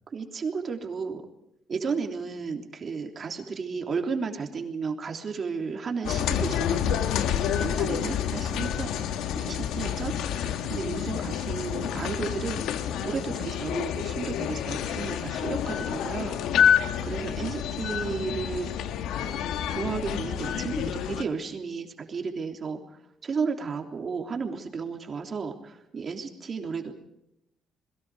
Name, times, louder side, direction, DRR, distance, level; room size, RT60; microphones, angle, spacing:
voice 1, 0.1-1.3 1.7-7.0 7.6-8.9 9.3-18.7 19.7-26.9, right 5 dB, 35° right, 4 dB, 3.3 m, -33 dB
sound 1, 6.0-21.2, left 9 dB, 80° left, 1.6 m, -28 dB
28.0 x 22.0 x 4.9 m, 0.81 s
cardioid pair, 135°, 0 cm